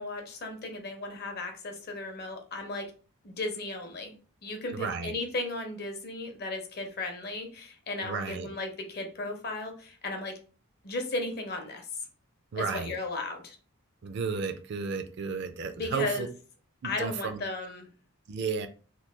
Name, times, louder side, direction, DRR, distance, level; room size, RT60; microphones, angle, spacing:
voice 1, 0.0-2.9 3.2-4.1 4.4-10.3 10.8-11.9 12.5-13.6 15.8-16.3 16.8-17.9, left 2 dB, 45° left, 4 dB, 0.7 m, -35 dB
voice 2, 4.7-5.1 8.0-8.5 12.5-12.9 14.0-16.3 16.8-17.4 18.3-18.7, right 5 dB, 50° right, 9 dB, 0.4 m, -33 dB
3.0 x 2.2 x 3.3 m, 0.38 s
head